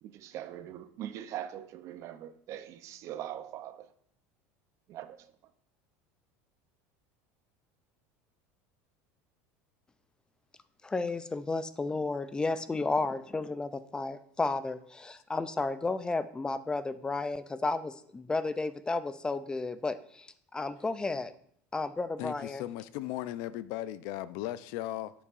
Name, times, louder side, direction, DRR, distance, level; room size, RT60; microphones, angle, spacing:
voice 1, 0.0-3.9 4.9-5.2, right 11 dB, 45° right, 0.6 m, -41 dB
voice 2, 10.8-20.3 20.5-21.3 21.7-22.6, left 3 dB, 10° left, 0.4 m, -32 dB
voice 3, 22.2-25.1, left 14 dB, 65° left, 0.5 m, -37 dB
10.0 x 7.0 x 2.5 m
supercardioid pair, 140°, 7 cm